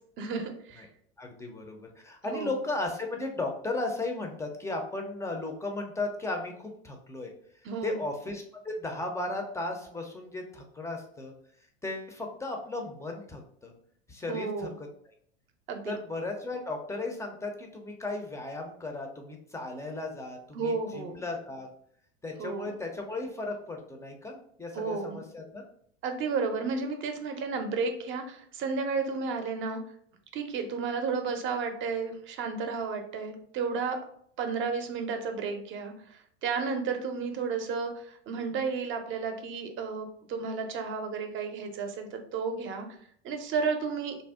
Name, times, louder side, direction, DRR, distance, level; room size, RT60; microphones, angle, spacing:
voice 1, 0.2-0.9 2.2-2.5 7.6-8.0 14.3-14.7 15.7-15.9 20.5-21.2 22.4-22.7 24.7-25.2 26.0-29.8 30.3-34.0 34.4-42.9 43.2-44.2, right 5 dB, 40° right, 6 dB, 0.6 m, -32 dB
voice 2, 1.2-7.3 7.8-11.3 11.8-13.7 14.1-14.9 15.9-21.7 22.2-25.6, left 2 dB, 10° left, 3 dB, 0.5 m, -35 dB
2.6 x 2.0 x 3.5 m, 0.64 s
hypercardioid pair, 95°, 31 cm